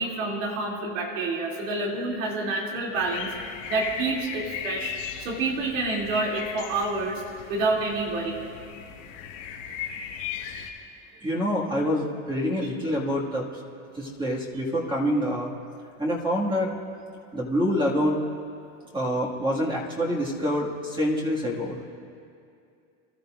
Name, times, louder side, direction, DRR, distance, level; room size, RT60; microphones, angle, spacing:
voice 1, 0.0-4.9 5.2-7.2 7.5-8.4, right 3 dB, 90° right, -2 dB, 2.9 m, -28 dB
sound 1, 2.9-10.7, left 8 dB, 85° left, 2.0 m, -37 dB
voice 2, 11.2-13.5 13.9-15.5 16.0-16.7 17.3-18.2 18.9-21.8, equal, 15° right, -5 dB, 2.0 m, -26 dB
25.5 x 12.5 x 2.5 m, 2.5 s
supercardioid pair, 115°, 37 cm